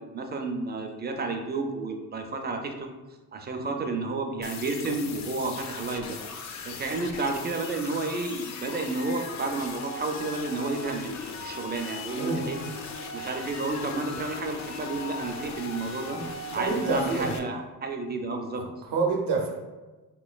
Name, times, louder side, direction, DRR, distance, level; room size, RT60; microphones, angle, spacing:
voice 1, 0.0-2.9 3.3-6.2 6.6-12.6 13.1-16.2 16.5-18.6, right 3 dB, 25° right, 4 dB, 0.4 m, -31 dB
sound 1, 4.4-17.4, left 4 dB, 45° left, 0.4 m, -38 dB
voice 2, 12.2-12.7 16.1-16.3 16.5-17.4 18.6-19.5, right 4 dB, 80° right, 1 dB, 0.7 m, -28 dB
3.6 x 3.0 x 2.3 m, 1.2 s
cardioid pair, 95°, 39 cm